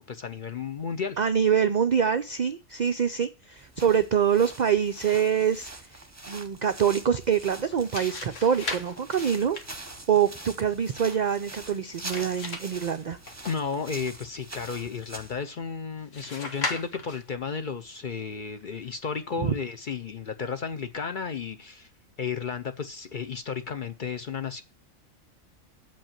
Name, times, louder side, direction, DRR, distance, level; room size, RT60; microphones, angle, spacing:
voice 1, 0.0-1.2 13.5-21.9 22.2-24.6, left 6 dB, 50° left, 0.6 m, -33 dB
voice 2, 1.2-6.0 6.3-9.6 10.1-13.2 19.4-19.5, right 8 dB, 65° right, 0.4 m, -25 dB
sound 1, 3.6-15.4, right 2 dB, 15° right, 0.9 m, -44 dB
sound 2, 7.7-13.9 16.1-17.4, left 3 dB, 65° left, 1.9 m, -38 dB
7.2 x 5.4 x 7.2 m
omnidirectional pair, 1.4 m